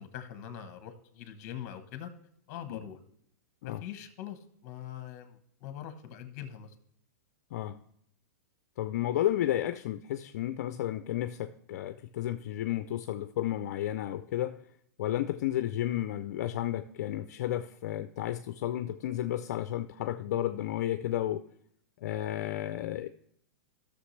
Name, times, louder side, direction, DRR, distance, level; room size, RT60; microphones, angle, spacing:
voice 1, 0.0-2.1 2.5-3.0 3.6-6.7, left 10 dB, 40° left, 9 dB, 1.1 m, -43 dB
voice 2, 7.5-7.8 8.8-14.6 15.0-21.5 22.0-23.1, left 12 dB, 60° left, 11 dB, 0.4 m, -32 dB
14.5 x 6.6 x 3.2 m, 0.70 s
hypercardioid pair, 145°, 9 cm